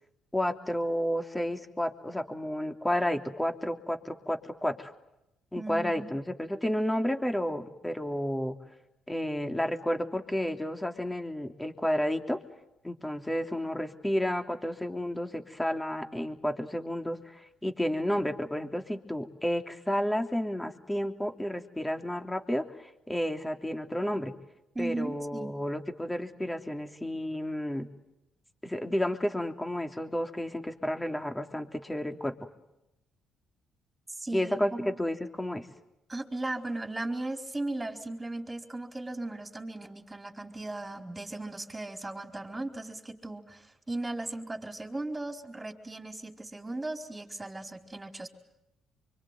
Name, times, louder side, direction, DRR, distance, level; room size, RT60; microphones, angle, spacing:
voice 1, 0.3-4.9 5.5-8.6 9.1-12.4 12.8-24.3 24.8-27.9 28.6-32.4 34.3-35.7, equal, 10° left, 5 dB, 3.2 m, -31 dB
voice 2, 5.5-6.1 24.7-25.6 34.1-34.9 36.1-48.3, right 2 dB, 15° right, 5 dB, 4.6 m, -37 dB
26.0 x 24.5 x 9.4 m, 0.86 s
supercardioid pair, 70°, 0 cm